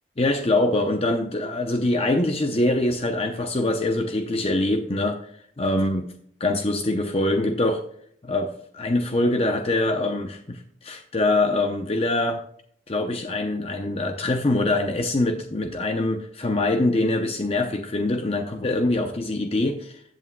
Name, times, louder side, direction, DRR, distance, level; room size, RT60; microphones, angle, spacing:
voice 1, 0.2-5.2 5.6-6.1 6.4-7.8 8.2-12.4 12.9-20.0, left 2 dB, 30° left, 5 dB, 0.6 m, -24 dB
14.5 x 8.3 x 2.2 m, 0.64 s
head